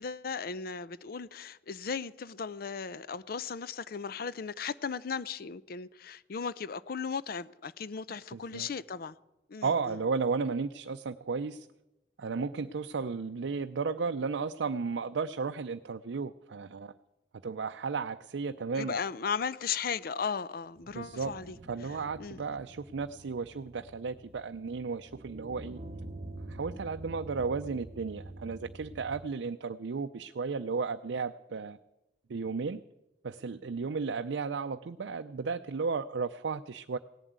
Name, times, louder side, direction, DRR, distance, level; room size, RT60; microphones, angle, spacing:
voice 1, 0.0-9.1 9.5-10.0 18.8-21.6 22.2-22.4, left 6 dB, 55° left, 0.5 m, -36 dB
voice 2, 8.3-8.7 9.6-11.7 12.2-16.9 17.4-19.0 20.9-21.3 21.7-25.8 26.5-31.8 32.3-32.8 33.2-37.0, right 4 dB, 90° right, 0.5 m, -34 dB
sound 1, 20.8-29.2, right 2 dB, 35° right, 0.8 m, -47 dB
17.0 x 7.4 x 9.3 m
head